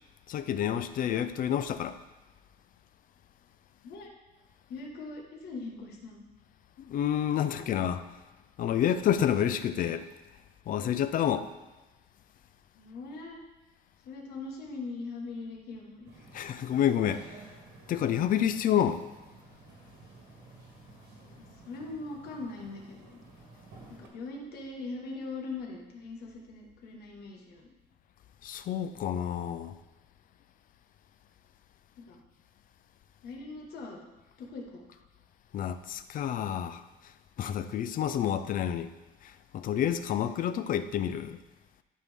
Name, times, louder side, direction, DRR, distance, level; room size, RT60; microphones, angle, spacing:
voice 1, 0.3-2.0 6.8-8.0 8.6-10.1 10.7-11.5 16.3-17.3 17.9-19.0 28.4-29.8 35.5-36.8 37.4-38.9 39.2-41.4, left 10 dB, 55° left, 0.5 m, -29 dB
voice 2, 4.7-6.2 12.7-13.4 14.0-16.2 20.9-23.2 23.9-27.7 32.0-32.2 33.2-34.0 34.4-35.0, left 3 dB, 70° left, 1.5 m, -41 dB
sound 1, 16.0-24.1, right 3 dB, 75° right, 1.6 m, -53 dB
11.0 x 4.3 x 3.7 m
cardioid pair, 110°, 17 cm